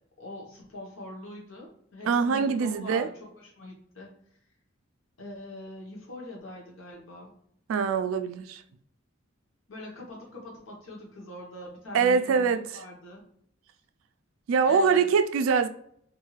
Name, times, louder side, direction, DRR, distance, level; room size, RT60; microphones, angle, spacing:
voice 1, 0.2-4.1 5.2-7.3 9.7-13.2 14.6-15.1, left 1 dB, 90° left, 1.0 m, -42 dB
voice 2, 2.1-3.1 7.7-8.6 11.9-12.6 14.5-15.7, right 5 dB, 90° right, 0.3 m, -23 dB
2.6 x 2.3 x 3.1 m
head